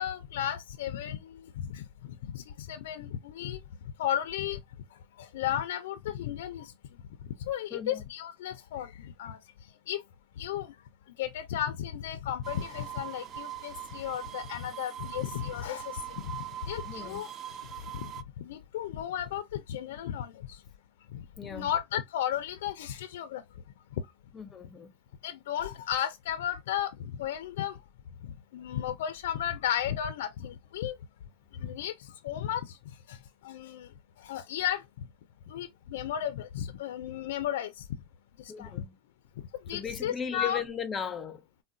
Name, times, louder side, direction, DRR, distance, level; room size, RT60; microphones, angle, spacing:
voice 1, 0.0-1.9 2.3-3.6 4.0-4.6 5.2-6.7 7.4-9.4 9.9-10.0 10.4-10.7 11.2-16.3 16.7-17.3 17.9-18.1 18.4-20.6 21.1-21.2 21.5-23.4 25.2-27.7 28.5-31.0 31.5-31.9 32.2-32.8 33.1-33.2 33.4-33.9 34.2-34.8 35.5-37.9 38.4-38.8 39.7-40.6, left 10 dB, 80° left, 0.4 m, -34 dB
voice 2, 7.7-8.0 16.8-17.2 21.4-21.7 24.3-24.9 38.5-38.9 39.7-41.5, left 7 dB, 25° left, 0.5 m, -37 dB
sound 1, 12.4-18.2, right 11 dB, 35° right, 0.3 m, -42 dB
3.7 x 2.0 x 2.4 m
supercardioid pair, 130°, 0 cm